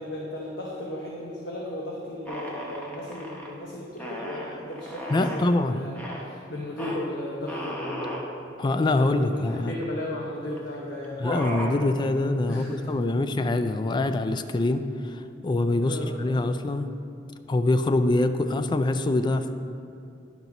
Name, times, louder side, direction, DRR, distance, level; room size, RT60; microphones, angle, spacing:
voice 1, 0.0-8.2 9.0-11.2 12.5-13.0 15.8-16.1, left 1 dB, 80° left, -3 dB, 0.9 m, -35 dB
sound 1, 2.3-3.5 4.0-5.5 6.0-6.3 6.8-7.0 7.5-8.2 8.9-9.0 9.2-9.9 10.6-10.7 11.0-11.8, equal, 10° left, 0.9 m, -35 dB
voice 2, 5.1-5.8 8.6-9.7 11.2-16.9 17.5-19.5, left 2 dB, 25° left, 9 dB, 0.3 m, -24 dB
10.5 x 4.0 x 5.8 m, 2.6 s
head